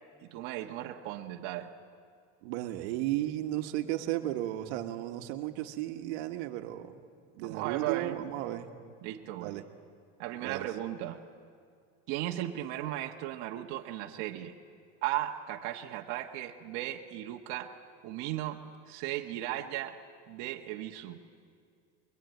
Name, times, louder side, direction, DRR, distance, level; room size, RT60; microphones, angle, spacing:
voice 1, 0.2-1.7 7.4-8.2 9.0-9.5 10.2-11.2 12.1-14.5 15.0-17.7 18.0-18.6 18.9-20.0 20.3-21.2, right 13 dB, 65° right, 2 dB, 1.4 m, -36 dB
voice 2, 2.4-7.1 7.3-8.7 9.3-9.6 10.4-10.7, right 14 dB, 85° right, 6 dB, 1.6 m, -34 dB
23.5 x 22.5 x 9.3 m, 2.3 s
cardioid pair, 145°, 33 cm